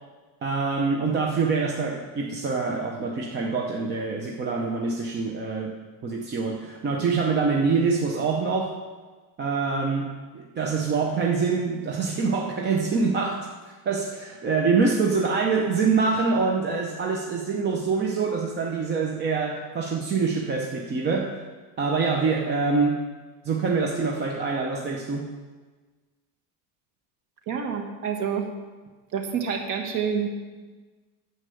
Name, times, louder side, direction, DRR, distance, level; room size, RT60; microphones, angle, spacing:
voice 1, 0.4-5.8 6.0-8.8 9.4-21.4 21.8-23.1 23.4-25.3, right 4 dB, 25° right, 1 dB, 0.7 m, -25 dB
voice 2, 27.5-28.5 29.1-30.3, right 7 dB, 45° right, 4 dB, 1.6 m, -28 dB
9.7 x 6.8 x 7.7 m, 1.4 s
cardioid pair, 160°, 44 cm